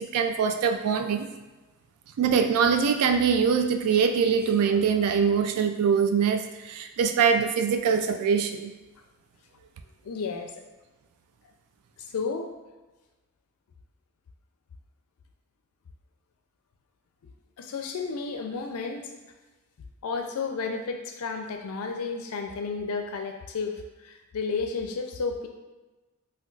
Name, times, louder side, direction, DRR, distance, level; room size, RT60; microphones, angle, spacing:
voice 1, 0.0-1.3 2.2-8.7, right 6 dB, 85° right, 10 dB, 0.3 m, -23 dB
voice 2, 10.0-10.6 12.0-12.5 17.6-19.2 20.0-25.5, left 4 dB, 80° left, 4 dB, 0.4 m, -32 dB
2.3 x 2.2 x 3.8 m, 1.2 s
head